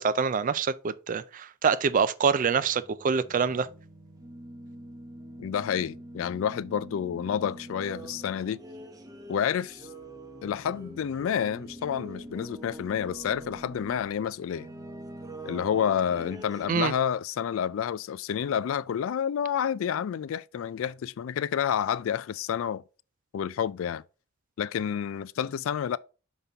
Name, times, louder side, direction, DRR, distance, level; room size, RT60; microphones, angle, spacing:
voice 1, 0.0-3.7 16.7-16.9, right 6 dB, 40° right, 0.4 m, -25 dB
sound 1, 2.6-16.7, right 1 dB, 15° right, 0.8 m, -44 dB
voice 2, 5.4-8.6 9.3-9.9 10.4-14.7 15.4-22.8 23.3-24.0 24.6-26.0, left 8 dB, 65° left, 0.3 m, -29 dB
5.7 x 5.4 x 3.4 m
head